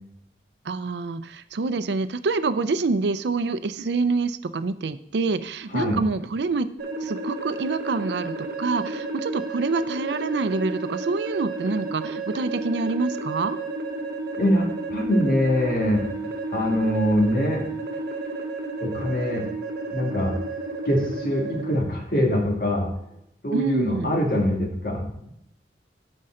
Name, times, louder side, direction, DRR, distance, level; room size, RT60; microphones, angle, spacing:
voice 1, 0.7-6.7 7.0-13.6 23.5-24.1, right 3 dB, 80° right, 13 dB, 0.5 m, -26 dB
sound 1, 6.8-21.8, right 2 dB, 65° right, 1.0 m, -32 dB
voice 2, 14.4-17.6 18.8-19.4 19.9-20.3 20.8-22.9 23.4-25.1, equal, 50° left, 1 dB, 1.7 m, -23 dB
11.5 x 5.4 x 3.8 m, 0.77 s
head